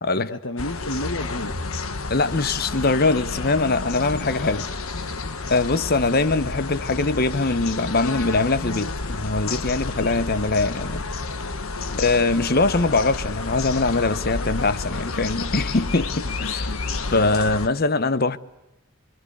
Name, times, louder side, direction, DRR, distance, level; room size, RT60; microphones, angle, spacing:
voice 1, 0.2-1.6 11.9-12.0 16.2-16.8, left 1 dB, 60° left, 1.3 m, -32 dB
sound 1, 0.6-17.7, left 3 dB, 85° left, 1.4 m, -30 dB
voice 2, 2.1-4.7 5.5-11.0 12.0-16.7 17.1-18.4, left 3 dB, 45° left, 1.0 m, -22 dB
25.5 x 23.5 x 8.2 m
head